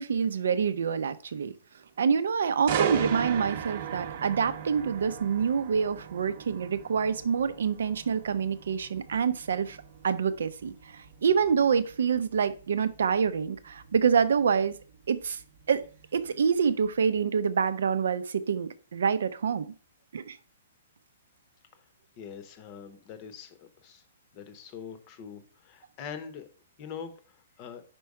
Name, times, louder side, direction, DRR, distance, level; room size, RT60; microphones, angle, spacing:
voice 1, 0.0-1.5 2.0-9.8 10.0-10.7 11.2-14.8 15.1-15.4 15.7-15.8 16.1-19.7 20.1-20.4, right 6 dB, 80° right, 13 dB, 0.6 m, -26 dB
sound 1, 2.7-16.5 16.9-17.2, right 9 dB, 40° right, 0.8 m, -37 dB
voice 2, 22.2-24.0 24.3-26.5 26.8-27.8, left 7 dB, 25° left, 10 dB, 0.8 m, -43 dB
5.3 x 4.5 x 4.7 m, 0.38 s
hypercardioid pair, 170°, 0 cm